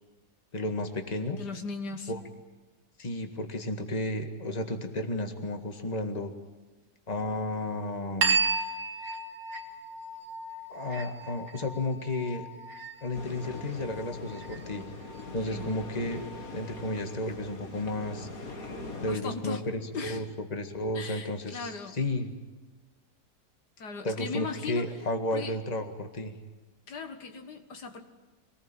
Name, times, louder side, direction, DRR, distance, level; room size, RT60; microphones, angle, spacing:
voice 1, 0.5-1.4 2.1-2.2 3.0-6.3 7.1-8.4 10.7-12.5 13.0-14.8 15.3-16.2 16.5-18.3 19.0-22.3 24.0-26.4, left 1 dB, 25° left, 6 dB, 2.0 m, -33 dB
voice 2, 1.4-2.1 15.5-15.7 19.1-19.6 19.9-20.3 20.9-22.0 23.8-24.9 25.3-25.6 26.9-28.0, left 4 dB, 80° left, 6 dB, 2.3 m, -38 dB
sound 1, 8.2-17.2, right 4 dB, 60° right, 2.2 m, -35 dB
sound 2, 13.1-19.2, left 3 dB, 60° left, 2.7 m, -42 dB
25.0 x 19.5 x 8.9 m, 1.2 s
omnidirectional pair, 1.7 m